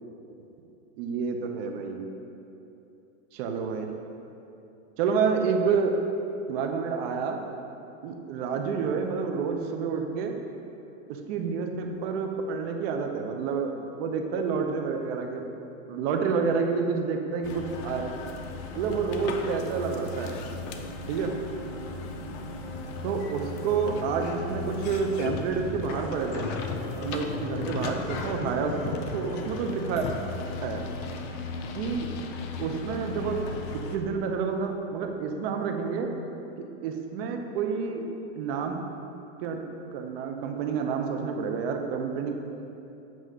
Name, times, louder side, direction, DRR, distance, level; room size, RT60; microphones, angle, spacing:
voice 1, 1.0-2.0 3.3-3.9 5.0-6.0 6.5-7.4 8.0-10.3 11.1-15.5 15.9-18.1 18.7-20.4 21.1-21.3 23.0-26.5 26.9-30.1 30.6-30.8 31.7-32.1 32.6-33.4 33.7-36.1 36.8-38.1 38.4-38.8 39.4-39.6 39.9-42.3, right 5 dB, 50° right, 3 dB, 0.8 m, -29 dB
sound 1, 17.4-34.0, left 4 dB, 40° left, 0.6 m, -36 dB
7.7 x 3.1 x 5.4 m, 2.8 s
hypercardioid pair, 125°, 38 cm